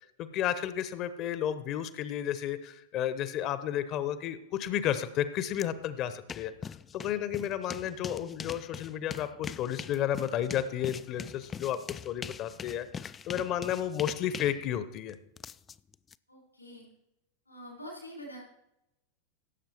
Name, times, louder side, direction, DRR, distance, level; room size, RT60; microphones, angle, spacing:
voice 1, 0.2-6.5 6.9-15.2, left 10 dB, 35° left, 13 dB, 0.9 m, -32 dB
sound 1, 5.5-5.7 6.0-16.1, left 6 dB, 20° left, 0.3 m, -42 dB
voice 2, 16.3-16.8 17.5-18.4, equal, 85° left, -1 dB, 4.0 m, -45 dB
16.5 x 7.5 x 4.4 m, 0.84 s
figure-of-eight pair, 90°, 0 cm